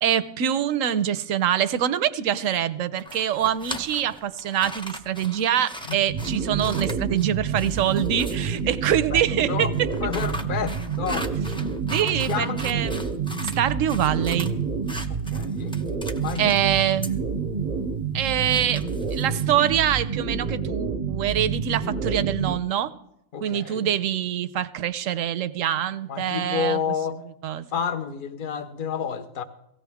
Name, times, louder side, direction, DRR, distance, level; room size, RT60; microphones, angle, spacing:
voice 1, 0.0-9.9 11.9-13.0 13.5-14.5 16.4-17.2 18.1-18.8 19.1-22.9 23.4-26.8 27.4-27.6, right 10 dB, 75° right, 15 dB, 1.0 m, -24 dB
sound 1, 3.0-8.6 9.7-13.6 13.9-14.5 14.9-16.7 17.0-17.1 18.2-19.8, equal, 5° left, 0.7 m, -39 dB
sound 2, 6.1-22.6, right 5 dB, 45° right, 0.7 m, -28 dB
voice 2, 8.9-9.2 9.5-9.7 10.0-11.3 12.0-12.6 15.1-15.8 16.2-16.6 23.3-23.9 26.1-27.2 27.7-29.4, left 7 dB, 45° left, 9 dB, 1.0 m, -30 dB
17.5 x 16.0 x 3.5 m, 0.79 s
omnidirectional pair, 1.4 m